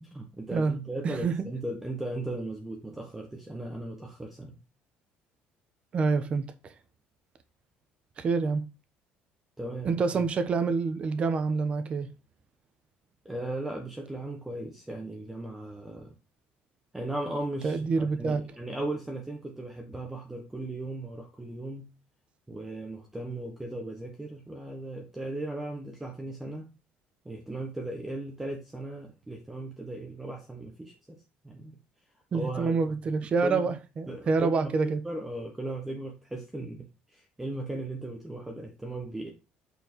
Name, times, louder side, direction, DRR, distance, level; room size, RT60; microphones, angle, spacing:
voice 1, 0.0-4.5 9.6-10.0 13.2-16.1 16.9-21.9 22.5-26.7 27.2-31.2 31.4-31.8 32.3-32.7 33.4-33.6 34.1-39.3, right 1 dB, 10° right, 1.2 m, -37 dB
voice 2, 5.9-6.7 8.2-8.7 9.8-12.1 17.6-18.4 32.3-35.0, right 4 dB, 35° right, 0.9 m, -27 dB
8.2 x 4.5 x 4.5 m
cardioid pair, 140°, 4 cm